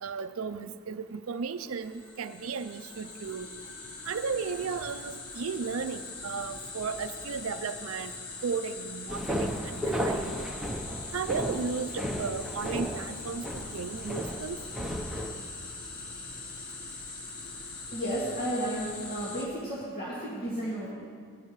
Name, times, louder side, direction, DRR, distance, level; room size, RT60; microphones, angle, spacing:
voice 1, 0.0-3.5 4.1-8.1 8.4-10.4 11.1-14.6, right 5 dB, 70° right, 10 dB, 0.5 m, -35 dB
sound 1, 1.7-19.5, left 3 dB, 85° left, 1.4 m, -42 dB
sound 2, 9.1-15.3, equal, ahead, 0.8 m, -34 dB
voice 2, 17.9-20.9, right 1 dB, 45° left, -8 dB, 2.1 m, -33 dB
18.5 x 11.0 x 3.2 m, 2.1 s
head